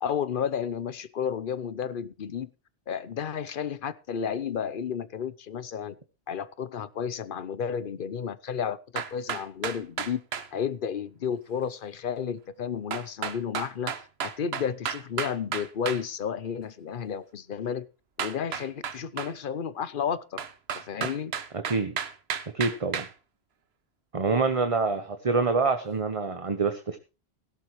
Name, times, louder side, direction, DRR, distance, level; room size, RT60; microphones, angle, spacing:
voice 1, 0.0-2.5 2.9-5.9 6.3-10.2 10.5-13.9 14.2-17.9 18.2-20.4 20.8-21.3, left 7 dB, 60° left, 17 dB, 0.9 m, -32 dB
sound 1, 9.0-10.5 12.9-16.0 18.2-19.3 20.4-23.1, right 7 dB, 85° right, 1.1 m, -33 dB
voice 2, 21.5-21.9 22.5-23.1 24.1-27.0, right 4 dB, 35° right, 8 dB, 1.0 m, -26 dB
16.5 x 12.0 x 3.1 m, 0.31 s
omnidirectional pair, 1.0 m